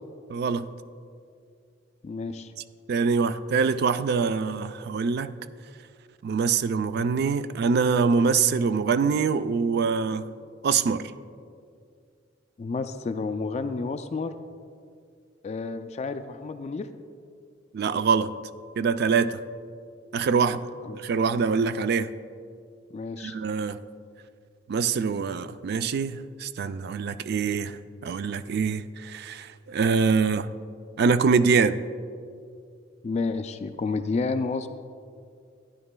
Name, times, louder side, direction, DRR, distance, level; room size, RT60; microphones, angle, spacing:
voice 1, 0.3-0.7 2.9-5.3 6.2-10.3 10.6-11.1 17.7-18.3 18.8-19.4 20.1-20.6 20.9-22.1 23.2-23.8 24.7-30.5 31.0-31.8, right 5 dB, 60° right, 0.3 m, -24 dB
voice 2, 2.0-2.5 12.6-14.3 15.4-16.9 20.3-20.5 20.9-21.0 22.9-23.4 33.0-34.7, left 4 dB, 35° left, 0.3 m, -30 dB
14.0 x 9.6 x 2.2 m
head